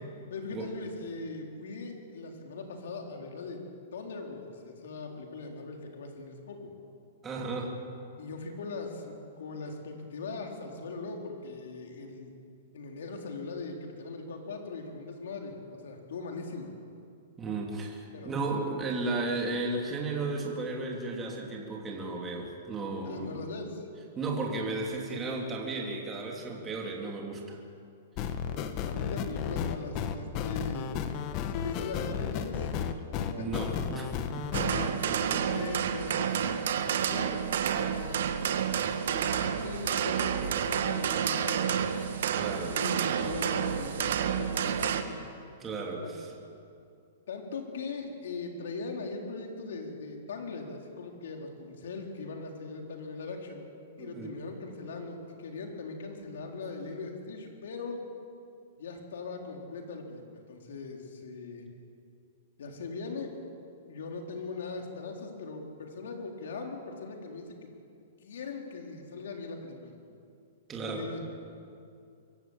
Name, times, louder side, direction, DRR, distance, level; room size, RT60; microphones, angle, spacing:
voice 1, 0.3-3.6 3.9-6.7 8.2-12.3 12.7-16.7 18.1-18.4 23.0-23.9 28.4-31.1 31.5-32.8 33.2-33.6 34.7-36.6 37.1-37.4 37.8-38.6 39.0-41.9 42.4-45.2 46.0-46.1 47.3-53.6 54.0-58.0 58.8-61.7 62.6-63.3 63.9-67.7 68.2-69.9 70.8-71.2, left 3 dB, 80° left, 2 dB, 4.1 m, -40 dB
voice 2, 7.2-7.7 17.4-23.4 24.2-27.6 33.4-35.6 42.3-42.8 45.6-46.3 54.0-54.4 70.7-71.1, right 3 dB, 15° right, 0 dB, 3.0 m, -34 dB
sound 1, 28.2-34.9, left 8 dB, 35° left, 1.2 m, -33 dB
sound 2, 34.5-45.0, right 8 dB, 70° right, 1.6 m, -29 dB
24.0 x 15.0 x 8.9 m, 2.4 s
hypercardioid pair, 150°, 0 cm